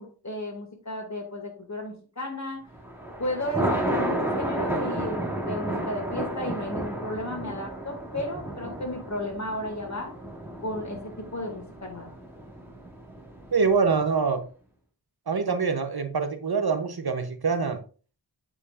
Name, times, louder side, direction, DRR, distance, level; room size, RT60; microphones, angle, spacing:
voice 1, 0.0-2.6 3.2-10.1 10.6-12.1, left 1 dB, 40° left, 2.1 m, -34 dB
Thunder, 2.7-14.0, right 1 dB, 5° right, 2.2 m, -32 dB
voice 2, 13.5-14.5 15.3-17.8, right 5 dB, 55° right, 0.9 m, -25 dB
8.4 x 5.0 x 2.5 m
wide cardioid pair, 50°, 44 cm